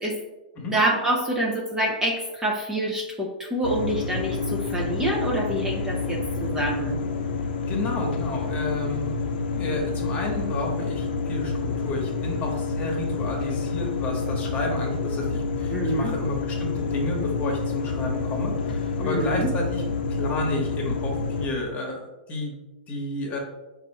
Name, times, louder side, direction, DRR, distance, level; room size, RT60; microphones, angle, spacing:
voice 1, 0.7-7.0 15.7-16.1 19.0-19.5, right 1 dB, 15° right, -1 dB, 0.7 m, -26 dB
sound 1, 3.6-21.5, left 4 dB, 80° left, 0.6 m, -28 dB
voice 2, 7.7-9.1 9.5-19.8 20.1-22.5 22.9-23.4, left 2 dB, 30° left, 1 dB, 1.2 m, -31 dB
4.3 x 2.7 x 4.2 m, 1.0 s
hypercardioid pair, 120°, 5 cm